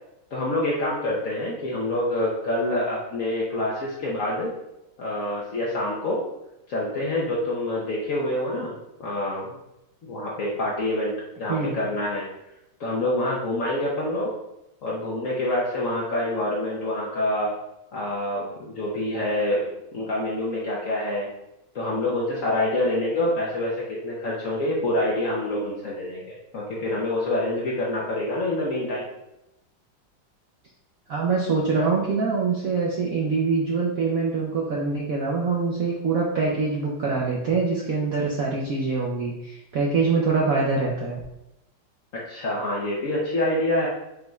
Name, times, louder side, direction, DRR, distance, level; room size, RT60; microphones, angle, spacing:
voice 1, 0.3-4.5 5.0-6.2 6.7-8.7 9.0-9.5 10.0-12.2 12.8-14.3 14.8-17.5 17.9-21.3 21.7-29.0 42.3-43.9, left 1 dB, 65° left, -5 dB, 0.8 m, -26 dB
voice 2, 31.1-41.2, right 4 dB, 75° right, -2 dB, 0.8 m, -24 dB
5.1 x 3.1 x 2.3 m, 0.89 s
omnidirectional pair, 2.1 m